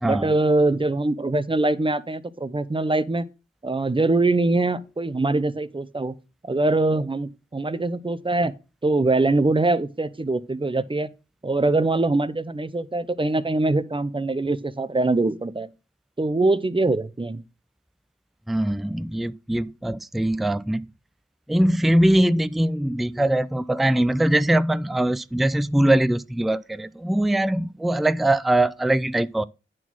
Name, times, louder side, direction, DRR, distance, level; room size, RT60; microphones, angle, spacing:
voice 1, 0.0-3.2 3.6-6.1 6.4-8.5 8.8-11.1 11.4-15.7 16.2-17.4, right 2 dB, 25° right, 0.7 m, -23 dB
voice 2, 18.5-20.9 21.5-29.4, right 1 dB, ahead, 0.4 m, -22 dB
9.1 x 4.1 x 6.1 m
cardioid pair, 50°, 21 cm